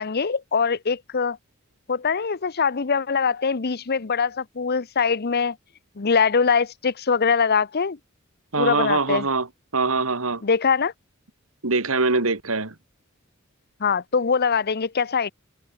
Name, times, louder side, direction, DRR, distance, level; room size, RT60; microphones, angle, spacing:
voice 1, 0.0-1.4 1.9-5.6 6.0-8.0 8.6-9.3 10.4-10.9 13.8-15.3, left 5 dB, 50° left, 0.8 m, -22 dB
voice 2, 8.5-9.5 9.7-10.4 11.6-12.7, right 3 dB, 85° right, 2.4 m, -23 dB
open air
head